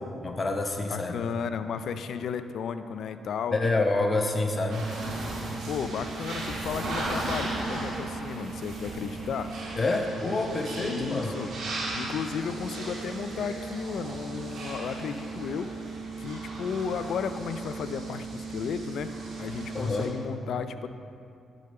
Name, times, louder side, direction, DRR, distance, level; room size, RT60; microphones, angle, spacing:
voice 1, 0.2-1.1 3.5-4.8 9.8-11.4 19.7-20.1, left 2 dB, 35° left, 4 dB, 0.9 m, -27 dB
voice 2, 0.9-3.6 5.7-9.5 10.8-11.5 12.0-15.7 16.2-19.1 19.4-20.9, left 7 dB, 70° left, 10 dB, 0.4 m, -34 dB
sound 1, 4.7-20.1, right 3 dB, 65° right, 2.6 m, -36 dB
10.5 x 5.1 x 6.8 m, 2.5 s
supercardioid pair, 60°, 0 cm